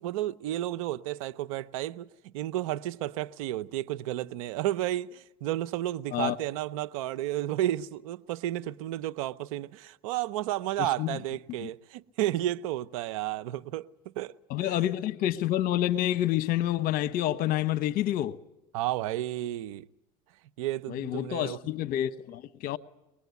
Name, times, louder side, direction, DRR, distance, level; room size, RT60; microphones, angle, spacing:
voice 1, 0.0-13.9 14.2-14.7 18.7-19.9 20.6-21.6, right 14 dB, 80° right, 0.8 m, -32 dB
voice 2, 10.8-11.2 11.6-11.7 14.5-18.4 20.9-22.8, left 13 dB, 55° left, 1.1 m, -28 dB
24.0 x 20.5 x 8.3 m
supercardioid pair, 95°, 17 cm